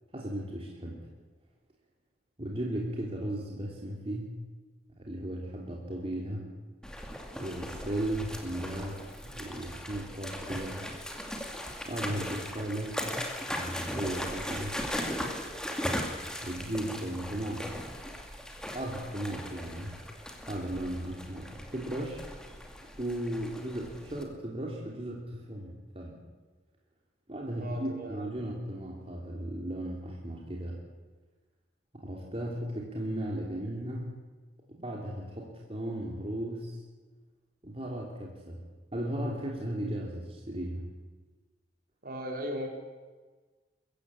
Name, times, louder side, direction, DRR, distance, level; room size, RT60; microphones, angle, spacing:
voice 1, 0.1-1.0 2.4-4.3 5.0-6.5 7.4-10.9 11.8-13.0 13.5-14.8 16.4-17.8 18.7-20.0 20.5-22.4 23.0-26.2 27.3-30.8 31.9-34.1 34.7-36.8 37.6-38.6 38.9-40.8, right 1 dB, 35° right, -2 dB, 3.2 m, -36 dB
sound 1, 6.8-24.2, equal, 5° left, 2.4 m, -38 dB
voice 2, 27.6-28.2 42.0-42.7, equal, 55° right, 2 dB, 4.3 m, -37 dB
22.0 x 15.5 x 8.4 m, 1.3 s
head